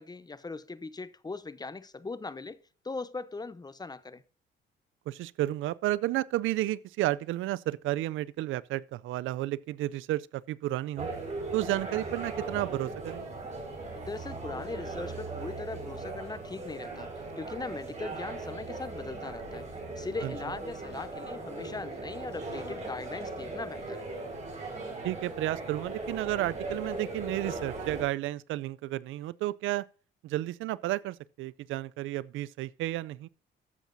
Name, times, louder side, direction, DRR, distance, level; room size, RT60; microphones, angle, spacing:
voice 1, 0.0-2.6 2.8-4.2 13.9-19.7 19.9-24.1, left 3 dB, 20° left, 0.7 m, -40 dB
voice 2, 5.1-11.1 11.5-13.2 20.2-20.3 25.0-29.9 30.2-33.3, right 15 dB, 80° right, 0.4 m, -32 dB
sound 1, 11.0-28.0, right 2 dB, 35° right, 4.9 m, -38 dB
13.0 x 7.3 x 2.6 m
cardioid pair, 90°, 20 cm